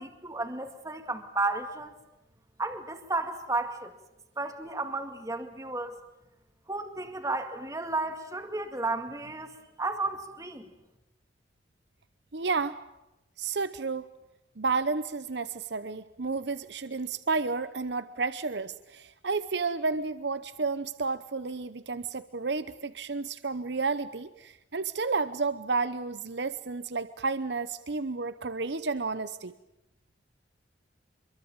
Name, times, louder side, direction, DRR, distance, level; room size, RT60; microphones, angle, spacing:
voice 1, 0.0-1.9 2.6-3.9 4.4-6.0 6.7-10.6, right 2 dB, 20° right, 6 dB, 2.1 m, -33 dB
voice 2, 12.3-12.8 13.4-14.1 14.6-29.5, right 4 dB, 60° right, 13 dB, 0.9 m, -31 dB
26.0 x 23.5 x 8.9 m, 0.91 s
head